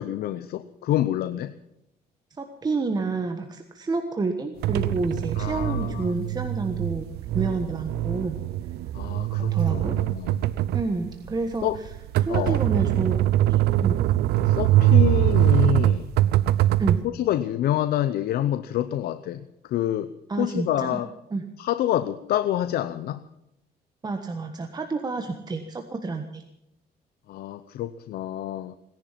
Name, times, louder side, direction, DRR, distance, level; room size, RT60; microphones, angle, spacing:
voice 1, 0.0-1.5 5.4-6.1 8.9-10.5 11.6-11.8 12.3-12.6 14.4-16.1 17.0-20.1 20.4-21.1 21.6-23.2 27.3-28.8, left 12 dB, 65° left, 12 dB, 0.7 m, -27 dB
voice 2, 2.4-7.1 7.3-8.4 9.4-10.0 10.7-11.7 12.2-14.0 16.8-17.1 20.3-21.0 21.3-21.4 24.0-26.4, right 3 dB, 25° right, 5 dB, 1.4 m, -29 dB
sound 1, 4.6-17.0, right 13 dB, 75° right, 0.7 m, -23 dB
18.0 x 10.5 x 7.4 m, 0.81 s
cardioid pair, 110°, 17 cm